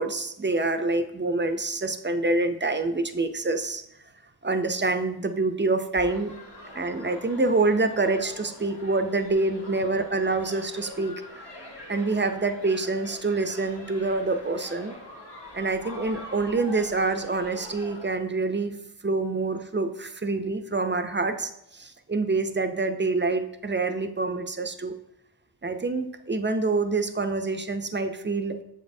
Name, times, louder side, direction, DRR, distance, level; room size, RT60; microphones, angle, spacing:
voice 1, 0.0-3.8 4.4-6.3 6.7-11.1 11.9-14.9 15.5-18.8 19.0-25.0 25.6-28.6, right 3 dB, 30° right, 8 dB, 0.4 m, -26 dB
sound 1, 5.9-18.2, left 1 dB, 80° left, 1.4 m, -44 dB
7.2 x 5.2 x 2.6 m, 0.82 s
wide cardioid pair, 55°, 40 cm